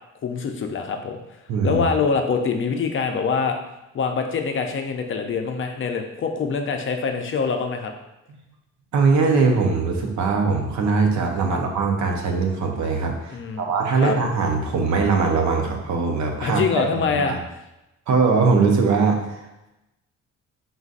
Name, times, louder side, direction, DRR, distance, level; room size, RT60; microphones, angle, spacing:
voice 1, 0.2-1.2 1.6-3.6 3.9-7.9 11.5-11.6 13.3-13.7 14.0-14.1 16.4-17.3, left 5 dB, 40° left, 4 dB, 0.5 m, -24 dB
voice 2, 1.5-1.9 8.9-17.4 18.1-19.4, right 4 dB, 70° right, 2 dB, 0.8 m, -21 dB
3.9 x 3.9 x 2.5 m, 0.94 s
cardioid pair, 90°, 30 cm